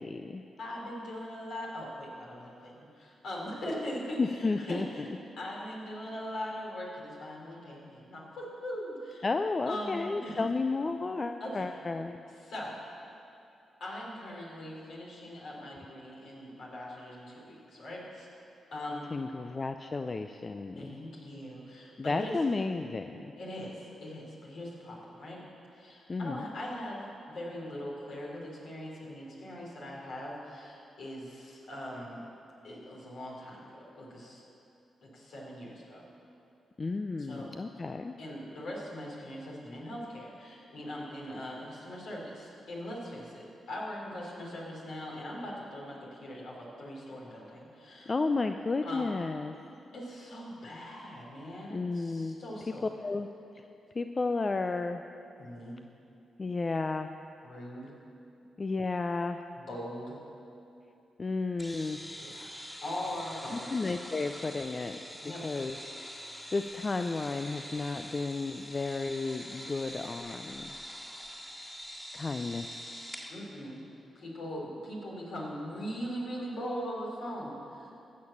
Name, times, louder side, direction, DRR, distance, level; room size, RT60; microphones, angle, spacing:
voice 1, 0.0-0.4 4.2-5.1 9.2-12.2 19.1-20.9 22.0-23.3 26.1-26.5 36.8-38.2 48.1-49.5 51.7-52.4 53.0-53.3 53.6-53.7 53.9-55.0 56.4-57.1 58.6-59.4 61.2-62.0 63.5-65.0 65.2-65.8 66.5-70.7 72.1-72.7, left 3 dB, 40° left, 7 dB, 0.5 m, -32 dB
voice 2, 0.6-5.1 5.4-9.3 9.7-10.4 11.4-11.7 12.4-12.7 13.8-18.3 18.7-19.3 20.8-22.4 23.4-25.4 25.7-32.2 32.6-34.4 35.0-36.1 37.2-37.5 38.2-48.1 48.8-49.1 49.9-52.8 55.4-55.8 57.4-57.9 59.6-60.2 62.2-62.5 62.8-63.7 65.2-65.5 73.3-73.8 74.2-77.9, equal, 75° left, -4 dB, 3.5 m, -41 dB
sound 1, 61.6-73.3, equal, 15° left, 2.2 m, -44 dB
16.0 x 6.6 x 7.2 m, 2.7 s
supercardioid pair, 45°, 0 cm